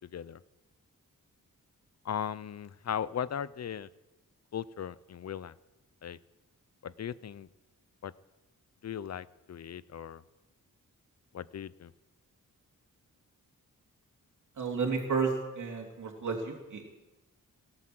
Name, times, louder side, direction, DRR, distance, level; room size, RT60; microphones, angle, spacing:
voice 1, 0.0-0.4 2.0-3.9 4.5-5.5 6.0-6.2 6.8-7.5 8.0-8.1 8.8-10.2 11.3-11.9, left 8 dB, 55° left, 18 dB, 0.6 m, -37 dB
voice 2, 14.6-16.9, right 5 dB, 65° right, 0 dB, 2.9 m, -32 dB
18.0 x 9.9 x 7.8 m, 1.1 s
wide cardioid pair, 125°, 32 cm